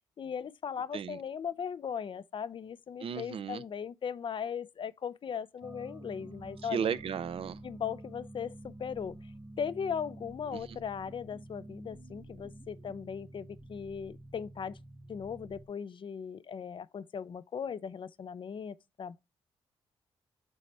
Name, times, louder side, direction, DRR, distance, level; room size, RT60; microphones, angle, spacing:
voice 1, 0.2-6.9 7.6-9.3 9.6-14.8 15.1-19.2, left 7 dB, 55° left, 0.5 m, -38 dB
voice 2, 3.0-3.6 6.6-7.6 10.5-10.8, right 7 dB, 65° right, 0.5 m, -35 dB
sound 1, 5.6-15.7, right 1 dB, 30° right, 1.4 m, -49 dB
7.6 x 4.2 x 3.2 m
supercardioid pair, 55°, 10 cm